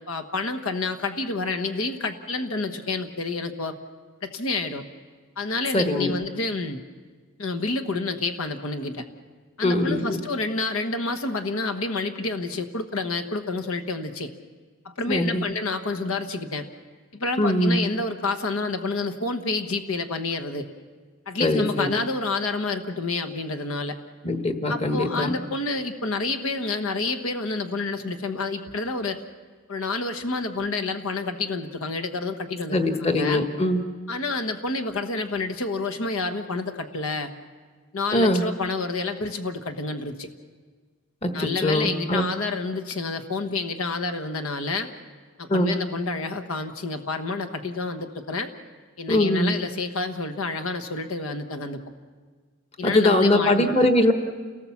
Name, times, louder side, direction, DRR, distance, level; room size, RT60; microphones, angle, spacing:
voice 1, 0.0-3.7 4.2-4.8 5.4-6.8 7.4-9.0 9.6-14.3 14.8-16.7 17.1-20.7 21.3-24.0 24.7-29.2 29.7-33.4 34.1-37.3 37.9-40.3 41.3-44.9 45.4-48.5 49.0-51.8 52.8-53.7, left 3 dB, 85° left, 8 dB, 1.2 m, -29 dB
voice 2, 5.7-6.2 9.6-10.2 15.1-15.5 17.4-17.8 21.4-22.0 24.2-25.3 32.7-33.8 38.1-38.4 41.2-42.3 45.5-45.8 49.1-49.6 52.8-54.1, left 1 dB, 30° left, 6 dB, 1.4 m, -22 dB
28.5 x 18.5 x 7.2 m, 1.5 s
head